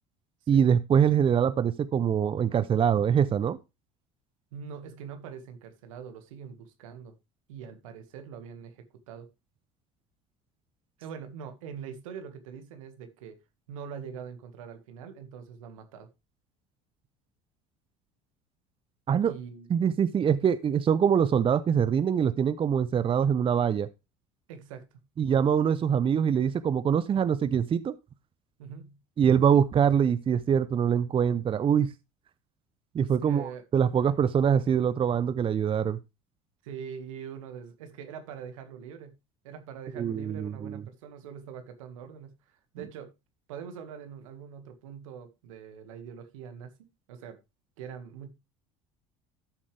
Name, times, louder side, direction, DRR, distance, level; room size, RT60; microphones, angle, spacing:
voice 1, 0.5-3.6 19.1-19.3 19.7-23.9 25.2-27.9 29.2-31.9 32.9-36.0 40.0-40.8, right 8 dB, 30° right, 0.6 m, -24 dB
voice 2, 4.5-7.2 7.5-9.3 11.0-13.4 13.7-16.1 19.2-19.7 24.5-25.0 28.6-29.0 33.0-33.6 36.6-39.2 39.4-43.1 43.5-46.7 47.1-47.4 47.8-48.3, right 7 dB, 80° right, 1.9 m, -43 dB
12.5 x 7.2 x 3.4 m
hypercardioid pair, 75°, 17 cm